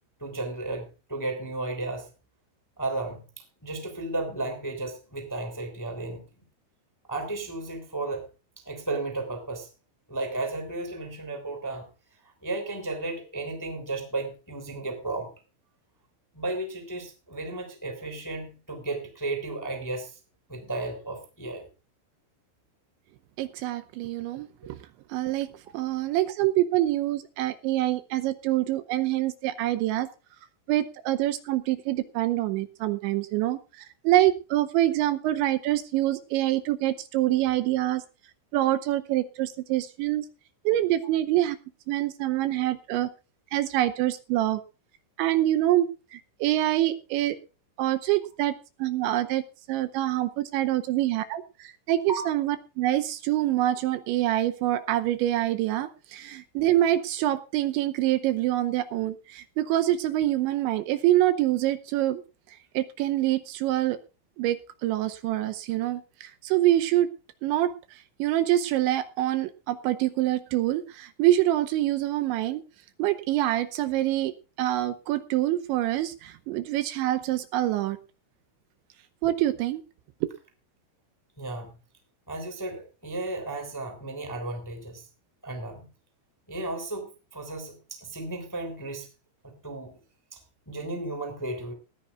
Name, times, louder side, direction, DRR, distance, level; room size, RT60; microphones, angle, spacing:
voice 1, 0.2-2.1 2.8-3.2 3.6-6.2 7.1-8.2 8.6-9.7 10.1-11.9 12.4-15.3 16.3-20.2 20.5-21.7 52.1-52.3 81.4-81.7 82.3-85.0 85.4-85.9 86.5-89.1 89.4-90.0 90.3-90.4 90.7-91.7, right 2 dB, 5° left, 4 dB, 1.8 m, -34 dB
voice 2, 23.4-24.8 25.1-30.1 30.7-38.0 38.5-40.3 40.6-41.6 41.9-43.1 43.5-44.6 45.2-47.4 47.8-48.5 48.8-49.4 49.7-62.2 62.5-64.0 64.4-67.1 67.4-72.6 73.0-78.0 79.2-79.8 80.2-80.3, right 14 dB, 80° right, 10 dB, 2.9 m, -26 dB
19.0 x 14.5 x 2.4 m, 0.32 s
omnidirectional pair, 5.6 m